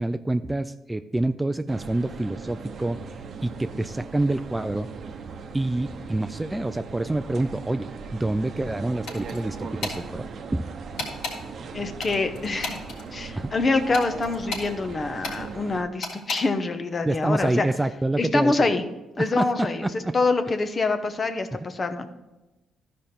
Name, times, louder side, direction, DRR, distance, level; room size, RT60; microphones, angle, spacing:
voice 1, 0.0-3.0 3.4-4.9 5.5-10.7 13.3-13.5 17.0-18.5 19.2-20.2, right 2 dB, 10° right, 10 dB, 0.3 m, -27 dB
sound 1, 1.7-15.8, right 5 dB, 55° right, 0.8 m, -39 dB
sound 2, 9.1-9.4 9.8-10.0 11.0-11.4 12.0-13.0 13.9-14.7 15.2-15.4 16.0-16.4, left 3 dB, 90° left, 3.3 m, -32 dB
voice 2, 11.7-12.8 13.1-17.6 18.2-18.8 19.2-22.1, left 3 dB, 35° left, 9 dB, 0.9 m, -25 dB
12.5 x 5.2 x 4.3 m, 1.0 s
cardioid pair, 90°, 0 cm